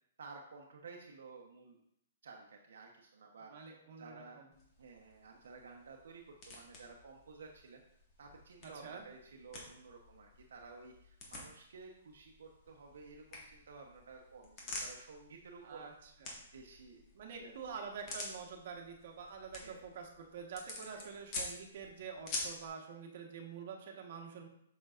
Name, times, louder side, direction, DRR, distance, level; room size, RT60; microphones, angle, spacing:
voice 1, 0.2-1.8 2.2-3.7 4.0-4.4 4.8-7.8 8.2-15.9 16.5-17.1 17.4-17.5 19.6-19.8 20.9-21.1, right 4 dB, 80° right, 1 dB, 0.9 m, -53 dB
voice 2, 3.5-4.5 8.6-9.1 15.6-16.4 17.1-24.5, right 6 dB, 55° right, 0 dB, 1.3 m, -47 dB
sound 1, 4.5-22.7, left 2 dB, 30° left, 1.6 m, -49 dB
7.3 x 6.1 x 2.5 m, 0.75 s
hypercardioid pair, 155°, 0 cm